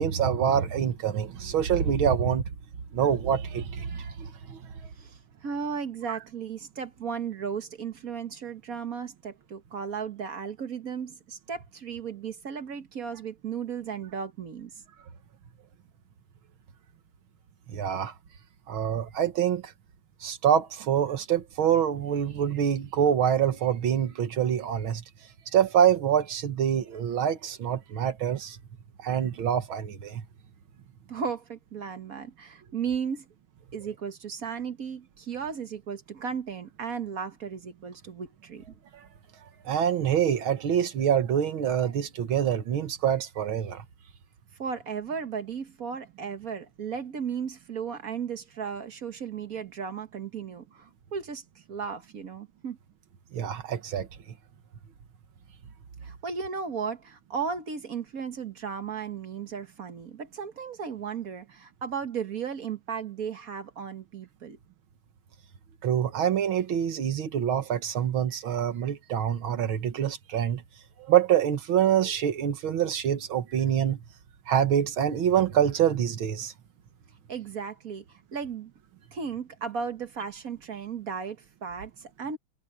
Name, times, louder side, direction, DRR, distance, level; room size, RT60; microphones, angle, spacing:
voice 1, 0.0-2.4 2.9-4.7 17.7-18.1 18.7-19.7 20.2-25.0 25.5-28.6 29.0-30.3 38.9-39.0 39.7-43.9 53.3-54.1 65.8-70.6 71.1-74.0 74.5-76.5, right 9 dB, 90° right, 2.2 m, -25 dB
voice 2, 5.0-14.7 31.1-33.3 33.7-38.6 44.6-51.4 51.7-52.8 56.0-64.6 77.3-78.7 79.1-82.4, right 6 dB, 50° right, 1.6 m, -35 dB
omnidirectional pair, 2.2 m